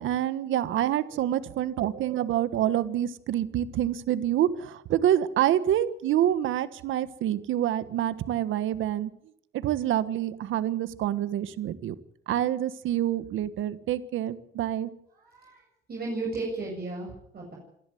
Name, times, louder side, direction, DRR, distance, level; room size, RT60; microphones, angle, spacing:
voice 1, 0.0-9.1 9.5-11.9 12.3-14.9, right 11 dB, 80° right, 14 dB, 1.3 m, -27 dB
voice 2, 1.3-1.8 15.2-15.6 15.9-17.6, right 3 dB, 50° right, -2 dB, 7.8 m, -35 dB
27.0 x 11.5 x 9.4 m, 0.70 s
cardioid pair, 90°, 20 cm